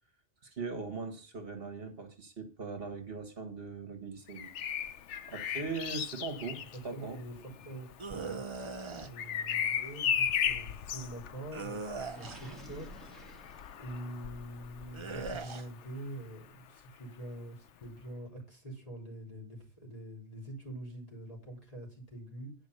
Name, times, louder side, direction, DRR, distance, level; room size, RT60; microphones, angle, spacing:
voice 1, 0.4-4.8 5.3-7.2 8.1-8.5, right 4 dB, 55° right, 2.0 m, -40 dB
Bird vocalization bird call bird song, 4.3-16.1 17.8-18.0, left 8 dB, 85° left, 1.1 m, -37 dB
voice 2, 6.9-7.3 7.7-7.9 9.0-13.3 13.8-22.5, right 1 dB, 30° left, 3.7 m, -45 dB
sound 1, 8.0-9.1 11.5-12.6 14.9-15.7, right 4 dB, 30° right, 0.6 m, -40 dB
Gurgling, 12.1-14.2, equal, ahead, 2.4 m, -50 dB
10.5 x 5.0 x 6.6 m
omnidirectional pair, 1.2 m